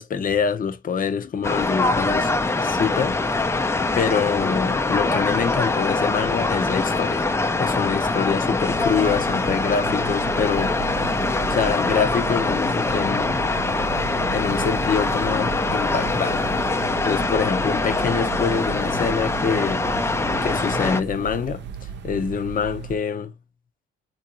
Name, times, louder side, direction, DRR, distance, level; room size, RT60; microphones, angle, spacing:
voice 1, 0.0-2.3 2.6-3.4 3.9-7.3 7.6-10.7 11.5-13.5 14.3-16.5 17.0-19.8 20.4-21.6 22.0-23.3, left 6 dB, 45° left, 0.8 m, -25 dB
sound 1, 1.4-21.0, left 3 dB, 15° left, 0.5 m, -23 dB
sound 2, 8.7-23.0, right 6 dB, 65° right, 0.7 m, -35 dB
3.5 x 2.7 x 2.9 m
cardioid pair, 90°, 20 cm